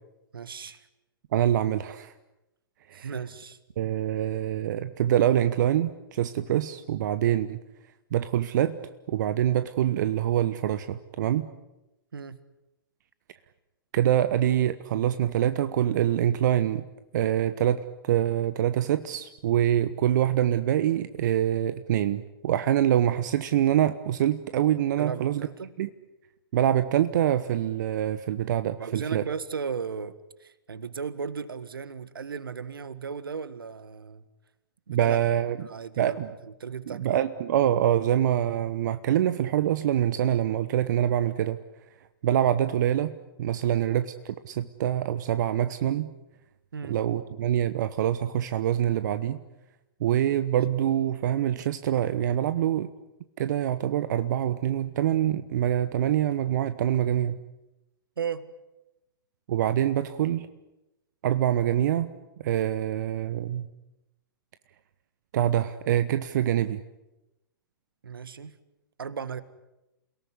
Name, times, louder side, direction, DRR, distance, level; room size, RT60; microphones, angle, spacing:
voice 1, 0.3-0.8 2.9-3.6 12.1-12.4 25.0-25.7 28.8-30.1 30.4-34.2 34.9-35.2 35.6-36.2 36.4-37.2 43.5-43.8 46.7-47.0 58.2-58.5 68.0-68.6 69.0-69.4, right 6 dB, 75° right, 15 dB, 1.7 m, -36 dB
voice 2, 1.3-2.1 2.9-3.1 3.8-7.6 8.1-8.8 9.1-11.5 13.9-16.8 17.1-25.5 25.8-25.9 26.5-29.2 34.9-35.7 36.0-36.3 36.9-41.6 42.2-43.1 43.4-46.1 46.8-49.4 50.0-52.9 53.4-57.4 59.5-60.5 61.2-62.1 62.4-63.7 65.3-66.8, right 11 dB, 55° right, 12 dB, 1.1 m, -25 dB
29.0 x 18.0 x 9.8 m, 0.97 s
figure-of-eight pair, 115°, 12 cm